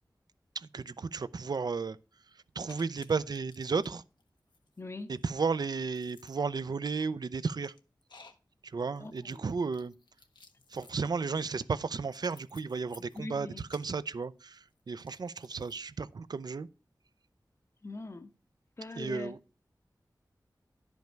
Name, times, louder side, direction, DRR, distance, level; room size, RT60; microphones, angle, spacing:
voice 1, 0.5-2.0 2.6-4.0 5.1-7.7 8.6-9.9 10.7-16.7 19.0-19.4, right 4 dB, 65° right, 0.4 m, -34 dB
sound 1, 2.7-3.9 4.2-15.8, left 4 dB, 90° left, 0.8 m, -59 dB
voice 2, 4.8-5.1 9.0-9.5 13.2-13.6 17.8-18.3 18.8-19.3, left 2 dB, 35° left, 0.7 m, -41 dB
10.5 x 5.2 x 4.5 m
wide cardioid pair, 65°, 7 cm